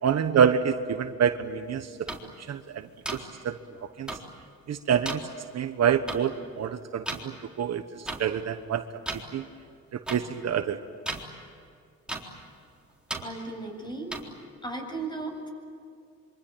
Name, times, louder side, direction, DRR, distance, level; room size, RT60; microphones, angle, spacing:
voice 1, 0.0-2.1 2.5-3.6 4.0-4.1 4.7-5.2 5.5-8.8 9.3-9.5 9.9-10.8, right 8 dB, 60° right, 9 dB, 1.3 m, -27 dB
sound 1, 2.1-2.2 3.1-3.2 4.1-4.2 5.1-5.2 6.1-6.2 7.1-7.2 8.1-8.2 9.1-9.2 10.1-10.2 11.1-11.2 12.1-12.2 13.1-13.2 14.1-14.2, right 2 dB, 5° right, 4.0 m, -33 dB
voice 2, 13.2-14.1 14.6-15.5, right 2 dB, 15° left, 3 dB, 7.7 m, -35 dB
26.5 x 24.5 x 9.1 m, 2.3 s
cardioid pair, 90°, 30 cm